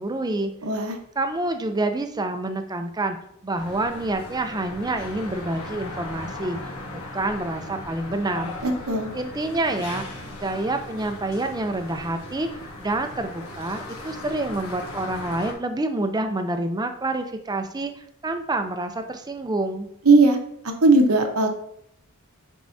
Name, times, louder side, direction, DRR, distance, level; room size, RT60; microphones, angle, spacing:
voice 1, 0.0-0.5 0.8-0.9 1.2-3.2 3.4-6.6 6.9-8.5 9.1-12.5 12.8-19.9, right 2 dB, 20° right, 7 dB, 0.5 m, -27 dB
voice 2, 0.6-1.0 8.6-9.1 20.0-20.4 20.8-21.5, right 3 dB, 75° right, 4 dB, 1.1 m, -18 dB
sound 1, 3.6-15.5, left 2 dB, 75° left, 1.2 m, -37 dB
9.5 x 4.7 x 2.7 m, 0.71 s
head